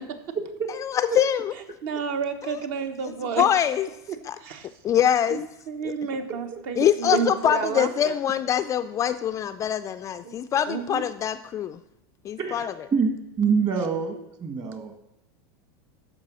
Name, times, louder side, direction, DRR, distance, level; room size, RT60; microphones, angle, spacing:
voice 1, 0.7-1.5 2.4-2.6 3.4-3.9 4.2-4.4 4.8-5.5 5.8-5.9 6.8-11.8 12.2-12.7, left 9 dB, 25° left, 10 dB, 0.3 m, -24 dB
voice 2, 1.8-3.4 4.1-4.7 5.3-8.1 10.2-10.3 10.7-11.0, right 6 dB, 55° right, 8 dB, 1.1 m, -31 dB
voice 3, 6.3-6.6 7.1-7.5 12.4-12.6 12.9-14.9, right 5 dB, 30° right, 6 dB, 1.5 m, -26 dB
13.0 x 4.9 x 6.2 m, 0.89 s
supercardioid pair, 140°, 13 cm